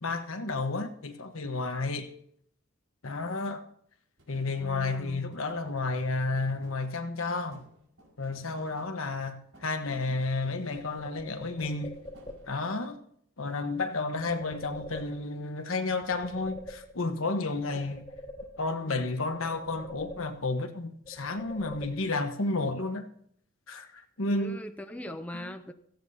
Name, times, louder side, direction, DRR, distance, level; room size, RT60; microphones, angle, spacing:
voice 1, 0.0-2.1 3.0-3.6 4.3-7.6 8.2-12.0 12.5-13.0 13.4-18.0 18.6-23.0 23.7-24.6 25.4-25.5, left 3 dB, 75° left, 1.2 m, -31 dB
sound 1, 4.2-10.7 10.9-12.8, right 1 dB, 85° right, 5.2 m, -59 dB
voice 2, 4.6-5.2 17.7-17.9 24.3-25.7, left 1 dB, 5° left, 0.6 m, -41 dB
sound 2, 10.8-12.7 14.2-15.6 15.9-17.3 17.6-19.0 19.3-20.7 21.0-22.4, left 1 dB, 25° left, 2.1 m, -46 dB
17.0 x 15.5 x 2.8 m
head